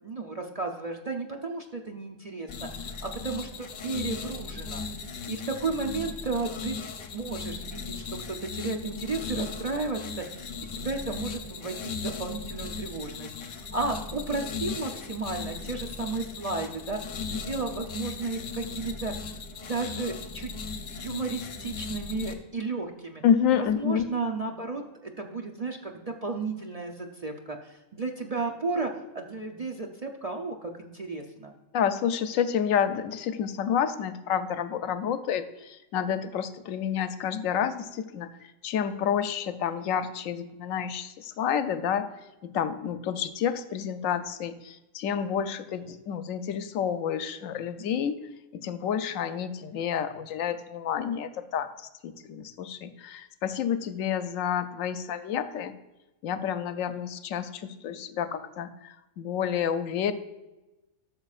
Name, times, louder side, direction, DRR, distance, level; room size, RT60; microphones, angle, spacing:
voice 1, 0.0-4.9 5.3-6.8 7.1-10.0 10.3-19.3 19.6-20.5 20.9-23.2 23.6-31.5, right 3 dB, 40° right, 2 dB, 0.6 m, -33 dB
sound 1, 2.5-22.3, left 5 dB, 55° left, 1.0 m, -37 dB
voice 2, 23.2-24.0 31.7-42.1 42.4-48.2 48.5-55.8 56.2-60.1, left 8 dB, 85° left, 11 dB, 1.0 m, -29 dB
13.0 x 6.6 x 2.4 m, 1.0 s
omnidirectional pair, 1.4 m